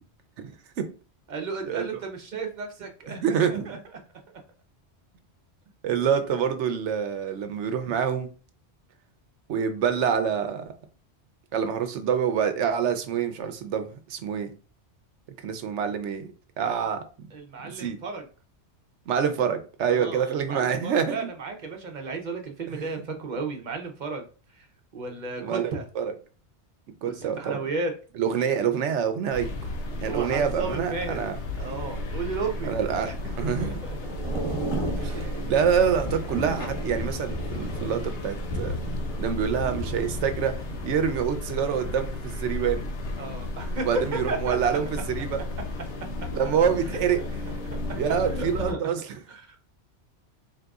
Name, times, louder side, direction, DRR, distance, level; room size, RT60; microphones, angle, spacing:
voice 1, 1.3-3.8 17.3-18.3 19.9-24.2 24.5-24.7 24.9-25.8 27.0-27.9 30.1-31.2 31.6-32.7 33.0-33.8 43.2-43.9 44.3-44.6 46.9-47.3 48.2-48.8 49.3-49.6, right 4 dB, 45° right, 0.8 m, -34 dB
voice 2, 3.1-3.8 5.8-8.3 9.5-10.7 11.5-14.5 15.4-16.3 16.6-17.3 17.6-18.0 19.1-21.2 22.7-22.8 25.4-26.1 27.0-27.6 28.2-29.5 30.0-31.3 32.6-33.1 33.4-33.8 35.0-38.8 39.2-40.5 40.8-42.9 43.9-45.4 46.3-47.2 48.0-49.0, right 7 dB, 85° right, 1.0 m, -26 dB
sound 1, 29.3-48.7, left 2 dB, 80° left, 1.0 m, -34 dB
Thunder / Rain, 32.4-42.4 42.7-43.0, right 1 dB, 30° right, 1.1 m, -36 dB
4.0 x 3.8 x 2.3 m
omnidirectional pair, 1.2 m